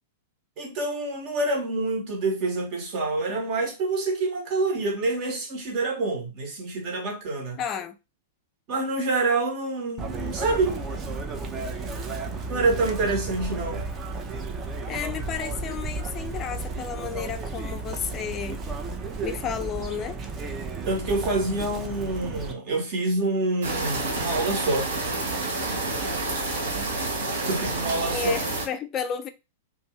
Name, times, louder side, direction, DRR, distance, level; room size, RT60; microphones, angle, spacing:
voice 1, 0.6-7.6 8.7-10.8 12.5-13.8 20.8-24.9 27.3-28.4, right 2 dB, 40° right, 1.2 m, -27 dB
voice 2, 7.6-8.0 14.9-18.6 19.2-20.2 28.1-29.3, left 8 dB, 30° left, 0.4 m, -32 dB
Chirp tweet, 10.0-22.5, right 3 dB, 25° right, 0.6 m, -33 dB
sound 1, 23.6-28.7, right 2 dB, 65° right, 1.0 m, -29 dB
2.6 x 2.5 x 3.1 m
figure-of-eight pair, 100°, 0 cm